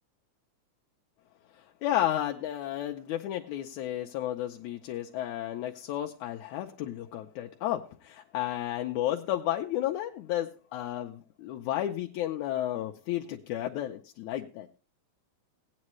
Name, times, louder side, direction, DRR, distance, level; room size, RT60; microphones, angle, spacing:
voice 1, 1.8-14.7, left 12 dB, 80° left, 2 dB, 2.1 m, -32 dB
17.5 x 9.7 x 3.1 m, 0.34 s
omnidirectional pair, 3.5 m